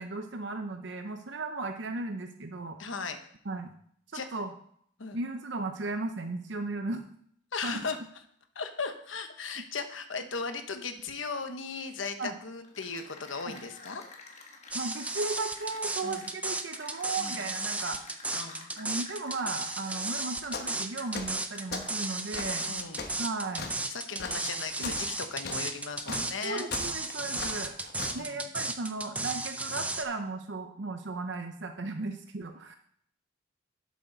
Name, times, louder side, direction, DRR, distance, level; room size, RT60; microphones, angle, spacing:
voice 1, 0.0-2.8 3.4-3.7 4.1-4.5 5.1-7.1 7.6-7.8 12.2-12.4 13.4-13.6 14.7-18.0 18.8-22.7 23.2-24.0 24.8-24.9 26.1-26.2 26.4-27.8 28.1-32.8, right 3 dB, 70° right, 6 dB, 0.7 m, -36 dB
voice 2, 2.8-3.2 4.1-4.3 5.0-5.2 7.5-8.0 8.5-14.0 16.0-16.3 17.2-17.4 18.3-18.7 22.6-23.0 23.9-26.7 27.9-28.5, left 4 dB, 85° left, 7 dB, 1.1 m, -37 dB
Cheering / Applause, 12.5-22.9, left 3 dB, 35° left, 1.4 m, -51 dB
sound 1, 14.7-30.0, right 2 dB, 5° right, 0.5 m, -34 dB
sound 2, 20.5-20.8 21.1-21.9 22.3-28.2, left 4 dB, 55° left, 1.2 m, -39 dB
11.5 x 7.6 x 4.0 m, 0.65 s
head